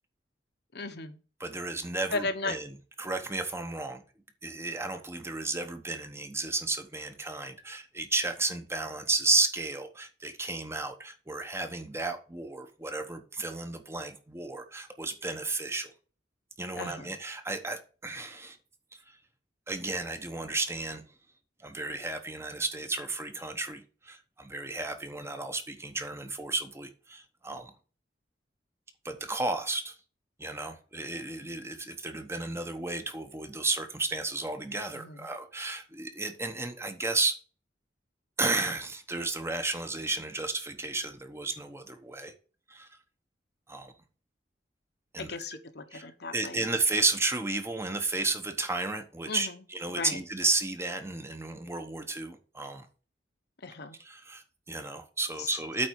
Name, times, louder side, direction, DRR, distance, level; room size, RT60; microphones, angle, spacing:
voice 1, 0.7-1.2 2.1-2.6 16.8-17.1 34.9-35.3 45.2-46.7 49.3-49.6 49.9-50.2 53.6-54.0 55.4-55.5, left 3 dB, 60° left, 1.1 m, -36 dB
voice 2, 1.4-2.7 3.0-4.0 4.4-15.9 16.6-18.6 19.1-19.2 19.7-21.0 21.6-27.7 29.0-30.0 30.4-37.3 38.4-42.3 42.7-42.9 43.7-43.9 45.1-45.3 45.9-52.9 54.0-55.9, right 3 dB, 15° right, 0.9 m, -33 dB
8.7 x 4.2 x 6.4 m
head